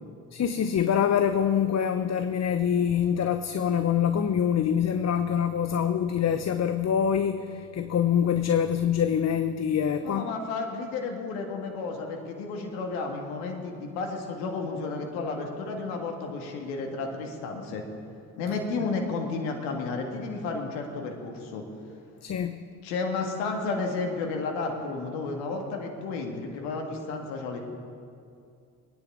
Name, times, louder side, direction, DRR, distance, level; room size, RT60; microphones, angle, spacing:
voice 1, 0.3-10.3 22.2-22.6, left 8 dB, 35° left, 9 dB, 0.8 m, -25 dB
voice 2, 10.0-17.8 18.4-21.6 22.8-27.6, left 3 dB, 75° left, 2 dB, 1.9 m, -32 dB
22.0 x 10.0 x 4.7 m, 2.4 s
hypercardioid pair, 50°, 48 cm